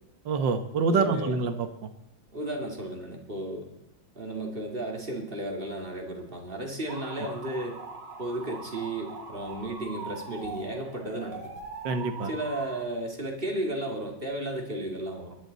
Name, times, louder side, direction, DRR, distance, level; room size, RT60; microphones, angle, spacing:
voice 1, 0.3-1.9 11.8-12.3, right 4 dB, 65° right, 8 dB, 1.9 m, -26 dB
voice 2, 0.9-1.4 2.3-3.7 4.2-7.8 8.2-11.5 12.3-15.3, right 1 dB, 25° right, 1 dB, 2.5 m, -34 dB
sound 1, 6.9-12.8, right 3 dB, 90° right, 2.8 m, -41 dB
20.0 x 11.5 x 4.0 m, 0.90 s
omnidirectional pair, 2.2 m